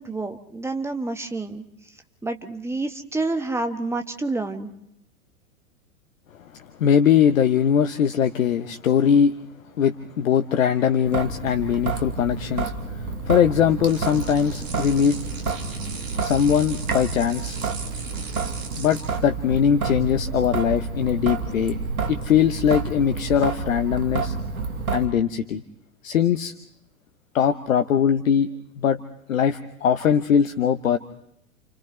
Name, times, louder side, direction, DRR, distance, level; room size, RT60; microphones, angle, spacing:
voice 1, 0.0-1.6 2.2-4.7, right 2 dB, 5° right, 6 dB, 1.6 m, -28 dB
voice 2, 6.8-9.3 9.8-15.2 16.2-17.6 18.8-21.8 22.1-24.3 24.9-25.6 26.0-26.5 27.3-28.5 28.8-29.0 29.3-31.0, left 8 dB, 70° left, 8 dB, 1.1 m, -21 dB
Traffic noise roadway noise / Drip / Trickle dribble, 11.1-25.1, right 4 dB, 80° right, 2.2 m, -29 dB
sound 1, 13.8-19.2, right 4 dB, 65° right, 4.3 m, -38 dB
29.5 x 29.0 x 3.3 m, 0.77 s
figure-of-eight pair, 100°, 42 cm